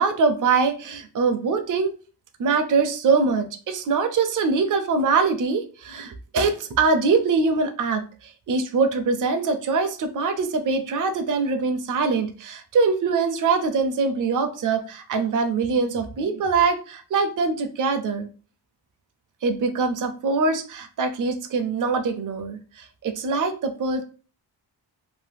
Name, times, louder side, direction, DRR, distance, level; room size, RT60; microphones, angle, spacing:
voice 1, 0.0-1.9 2.4-18.3 19.4-24.0, right 4 dB, 50° right, 7 dB, 0.5 m, -23 dB
2.7 x 2.0 x 3.3 m, 0.37 s
wide cardioid pair, 105°, 42 cm